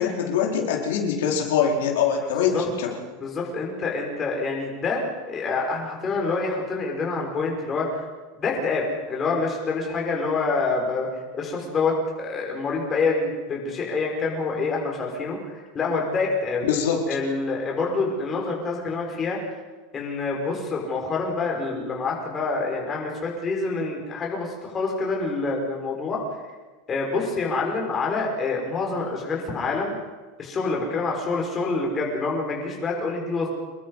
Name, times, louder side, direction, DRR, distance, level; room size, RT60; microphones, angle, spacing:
voice 1, 0.0-3.0 16.6-17.1, left 7 dB, 80° left, 0 dB, 4.4 m, -23 dB
voice 2, 2.2-2.6 3.2-7.9 8.4-11.1 11.3-16.6 17.1-19.4 19.9-26.2 26.9-30.0 30.4-33.5, left 3 dB, 20° left, -1 dB, 5.5 m, -27 dB
27.0 x 22.0 x 5.7 m, 1.3 s
supercardioid pair, 165°, 0 cm